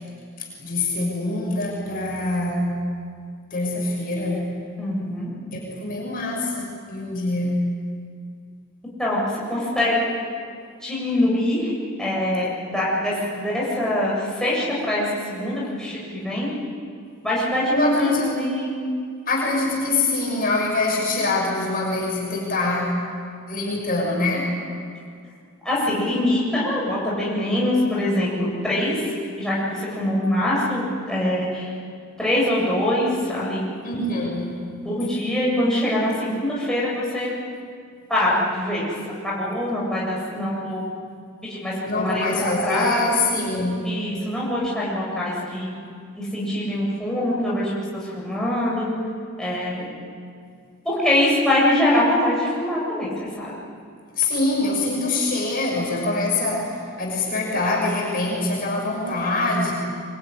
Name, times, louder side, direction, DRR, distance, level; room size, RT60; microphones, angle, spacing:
voice 1, 0.4-2.8 3.5-4.5 5.5-7.6 17.7-18.5 19.3-23.0 23.5-24.5 33.8-34.5 41.9-43.9 54.1-59.7, left 2 dB, 40° left, -2 dB, 6.4 m, -24 dB
voice 2, 4.8-5.3 9.0-10.0 10.8-11.7 12.0-16.5 17.2-18.9 25.6-31.7 32.2-33.7 34.8-37.3 38.1-38.9 39.2-40.8 41.4-43.2 43.8-45.7 46.2-48.9 49.4-49.9 50.8-53.5, left 1 dB, 5° left, -6 dB, 7.7 m, -23 dB
24.5 x 24.5 x 9.9 m, 2.2 s
head